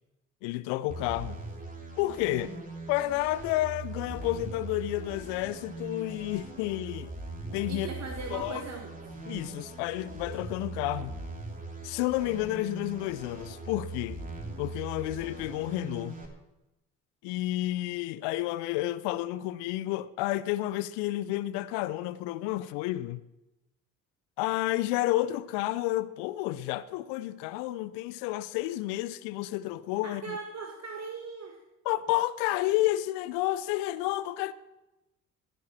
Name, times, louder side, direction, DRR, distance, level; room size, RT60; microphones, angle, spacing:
voice 1, 0.4-1.4 2.0-2.5 2.9-7.1 7.5-7.9 8.3-8.6 9.3-11.2 11.8-14.2 14.6-16.2 17.2-23.2 24.4-30.4 31.8-34.5, left 16 dB, 65° left, 0.7 m, -30 dB
sound 1, 0.9-16.3, right 2 dB, 20° right, 3.0 m, -41 dB
voice 2, 7.7-9.0 30.0-31.6, right 4 dB, 35° right, 1.7 m, -39 dB
17.0 x 9.6 x 4.3 m
hypercardioid pair, 55°, 43 cm